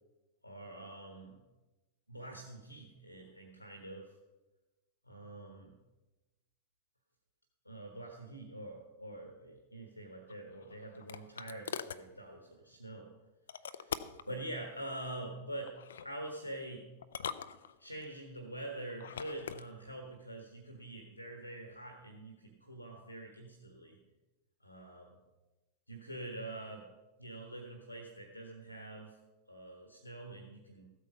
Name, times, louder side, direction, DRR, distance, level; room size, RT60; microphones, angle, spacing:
voice 1, 0.4-1.4 2.1-4.2 5.0-5.8 7.6-13.1 13.7-14.0 14.3-16.9 17.8-24.0 24.6-25.2 25.9-26.9 27.2-29.2 29.5-30.9, right 1 dB, 90° left, 4 dB, 1.4 m, -45 dB
sound 1, 10.3-12.1 13.5-14.3 15.7-16.1 17.0-18.1 18.9-19.7, left 8 dB, 65° left, 0.5 m, -42 dB
14.0 x 8.3 x 5.5 m, 1.1 s
figure-of-eight pair, 90°, 0 cm